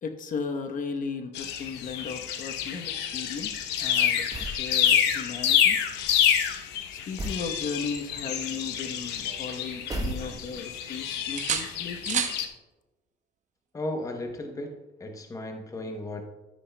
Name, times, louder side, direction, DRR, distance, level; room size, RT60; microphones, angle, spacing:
voice 1, 0.0-5.8 6.9-12.3, left 5 dB, 50° left, 1.0 m, -36 dB
sound 1, 1.3-12.5, left 9 dB, 85° left, 0.9 m, -28 dB
sound 2, 4.3-4.7 7.2-7.5 9.9-10.7, right 1 dB, 20° right, 1.0 m, -34 dB
sound 3, 8.2-9.8 10.1-10.9 11.4-12.4 14.3-14.5, right 8 dB, 45° right, 0.9 m, -34 dB
voice 2, 13.7-16.2, left 1 dB, 20° left, 0.9 m, -35 dB
12.5 x 10.0 x 2.3 m
cardioid pair, 110°, 17 cm